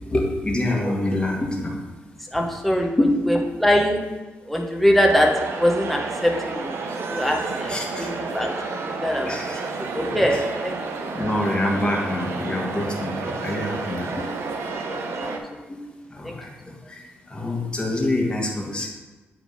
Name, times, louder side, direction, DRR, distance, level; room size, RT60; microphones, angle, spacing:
voice 1, 0.1-1.8 3.0-3.3 7.7-8.1 9.3-9.6 10.1-10.4 11.1-14.3 15.2-15.8 16.1-17.0 17.3-18.9, left 1 dB, 20° left, -1 dB, 1.5 m, -26 dB
voice 2, 2.3-2.9 3.3-4.0 4.5-5.3 5.6-6.3 6.6-6.7 7.1-7.7 8.3-8.5 8.7-9.4 9.9-10.7 14.9-15.0 15.3-15.4 16.2-16.3, equal, ahead, 0 dB, 1.0 m, -22 dB
sound 1, 5.1-15.4, right 4 dB, 75° right, 0.8 m, -31 dB
8.3 x 3.6 x 5.5 m, 1.2 s
cardioid pair, 115°, 4 cm